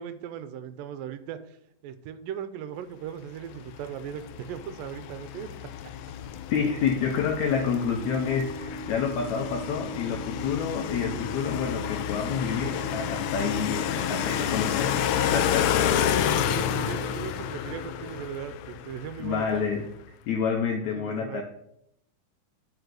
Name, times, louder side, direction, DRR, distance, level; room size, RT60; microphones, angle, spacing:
voice 1, 0.0-1.6 1.8-5.5 16.0-19.8 20.8-21.4, right 9 dB, 85° right, 11 dB, 2.4 m, -38 dB
sound 1, 3.5-19.7, left 10 dB, 90° left, 1.6 m, -30 dB
voice 2, 6.5-16.2 19.2-19.9 20.3-21.4, left 6 dB, 75° left, 3 dB, 1.9 m, -29 dB
Organ, 7.1-17.9, right 5 dB, 10° right, 3.8 m, -41 dB
10.0 x 4.7 x 6.4 m, 0.77 s
omnidirectional pair, 4.0 m